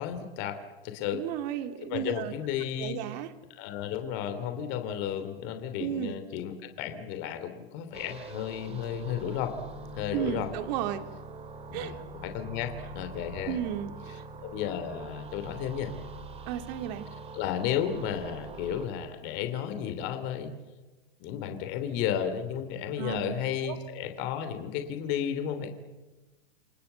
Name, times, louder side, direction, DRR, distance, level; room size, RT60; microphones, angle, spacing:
voice 1, 0.0-1.2 1.9-3.0 3.5-9.6 9.9-10.5 11.7-13.6 14.4-15.9 17.3-20.5 21.2-25.7, left 9 dB, 35° left, 8 dB, 3.1 m, -33 dB
voice 2, 1.1-2.3 2.8-3.3 5.8-6.2 8.7-8.8 10.1-11.1 11.7-11.9 13.5-14.2 16.5-17.1 23.0-23.3 23.6-23.8, right 10 dB, 45° right, 8 dB, 2.8 m, -33 dB
sound 1, 7.9-18.9, right 3 dB, 20° right, 2.8 m, -44 dB
29.5 x 24.5 x 8.2 m, 1.2 s
hypercardioid pair, 145°, 31 cm